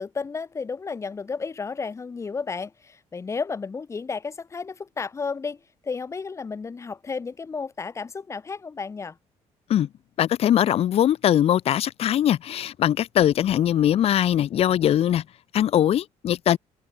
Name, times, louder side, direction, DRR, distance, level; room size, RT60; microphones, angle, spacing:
voice 1, 0.0-9.2, left 5 dB, 25° left, 2.6 m, -32 dB
voice 2, 10.2-15.2 15.5-16.6, left 11 dB, 55° left, 1.5 m, -21 dB
cardioid pair, 155°, 13 cm